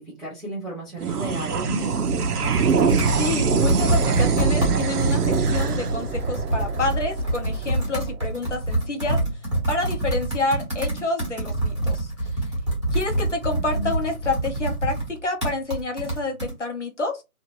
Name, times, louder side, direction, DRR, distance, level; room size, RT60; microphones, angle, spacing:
voice 1, 0.0-2.1 13.5-13.9, right 1 dB, ahead, 0.6 m, -34 dB
sound 1, 1.0-7.7, right 5 dB, 80° right, 0.7 m, -24 dB
Computer keyboard, 1.9-16.5, right 2 dB, 20° right, 1.0 m, -26 dB
voice 2, 3.2-9.2 9.7-12.1 12.9-17.2, left 2 dB, 50° left, 0.9 m, -28 dB
2.8 x 2.5 x 2.8 m
figure-of-eight pair, 170°, 45 cm